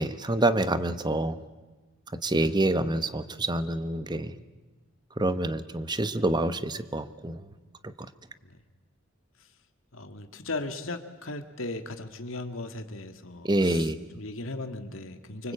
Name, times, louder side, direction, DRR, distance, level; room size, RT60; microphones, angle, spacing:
voice 1, 0.0-1.4 2.2-4.3 5.2-7.4 13.4-14.0, right 1 dB, 20° right, 12 dB, 1.0 m, -27 dB
voice 2, 2.3-2.7 8.4-8.6 9.9-15.5, left 2 dB, 75° left, 7 dB, 2.0 m, -37 dB
25.0 x 24.5 x 8.6 m, 1.2 s
head